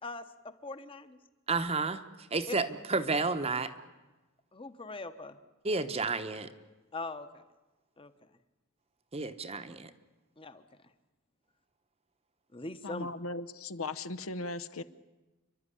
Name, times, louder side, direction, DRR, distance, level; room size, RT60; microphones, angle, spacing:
voice 1, 0.0-1.2 2.5-2.6 4.5-5.4 6.9-7.4 8.0-8.1 10.4-10.6 12.5-13.1, left 3 dB, 25° left, 11 dB, 1.1 m, -41 dB
voice 2, 1.5-2.0 2.3-3.7 5.6-6.5 9.1-9.9, right 3 dB, 25° right, 10 dB, 1.0 m, -31 dB
voice 3, 12.8-14.8, left 2 dB, 70° left, 13 dB, 0.9 m, -38 dB
28.5 x 12.0 x 10.0 m, 1.1 s
head